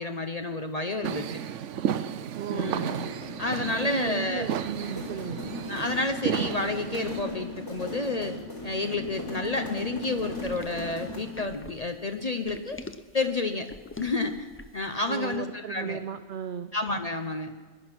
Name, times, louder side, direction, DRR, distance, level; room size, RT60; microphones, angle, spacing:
voice 1, 0.0-1.4 2.5-2.9 3.4-4.5 5.7-8.4 8.6-12.8 13.1-13.7 14.0-14.5 14.7-16.0 16.7-17.5, left 3 dB, 35° left, 6 dB, 0.8 m, -30 dB
sound 1, 1.0-7.2, right 9 dB, 80° right, 1.0 m, -33 dB
voice 2, 2.3-2.9 3.8-5.4 15.1-16.7, right 8 dB, 55° right, 10 dB, 0.6 m, -35 dB
sound 2, 2.7-11.4, left 2 dB, 75° left, 4.3 m, -38 dB
sound 3, 10.2-14.9, left 2 dB, 15° left, 0.4 m, -44 dB
21.0 x 11.0 x 6.0 m, 1.5 s
omnidirectional pair, 1.2 m